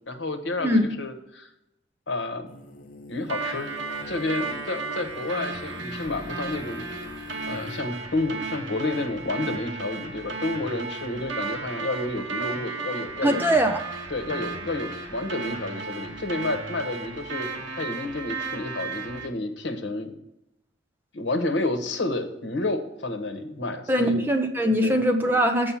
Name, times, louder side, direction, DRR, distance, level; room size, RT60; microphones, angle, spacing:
voice 1, 0.1-1.5 2.1-2.5 3.1-3.7 4.1-6.9 7.5-13.5 14.1-20.1 21.1-24.2 24.8-25.0, left 2 dB, 75° left, 7 dB, 1.0 m, -30 dB
sound 1, 2.5-7.8, left 3 dB, 45° left, 0.6 m, -43 dB
sound 2, 3.3-19.3, right 4 dB, 85° right, 1.1 m, -34 dB
voice 2, 13.2-13.8 23.9-25.7, equal, 10° right, 4 dB, 0.7 m, -22 dB
7.2 x 5.3 x 5.5 m, 0.87 s
head